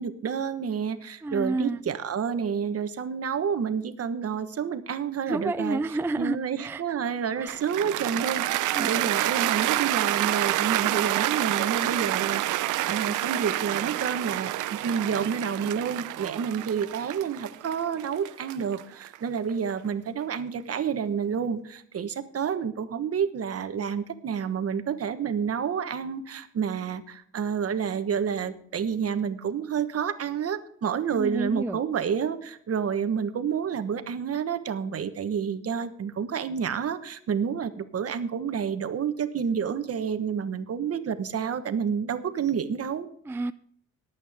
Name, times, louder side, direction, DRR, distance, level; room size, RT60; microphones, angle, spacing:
voice 1, 0.0-5.8 6.2-12.4 12.9-43.1, right 7 dB, 50° right, 1.3 m, -29 dB
voice 2, 1.2-1.8 5.3-6.8 7.4-7.6 8.2-8.3 8.7-8.9 31.1-31.8 43.3-43.5, right 2 dB, 10° right, 0.4 m, -30 dB
Cheering / Applause, 7.5-19.7, right 15 dB, 85° right, 0.7 m, -28 dB
19.0 x 8.6 x 3.6 m
cardioid pair, 90°, 30 cm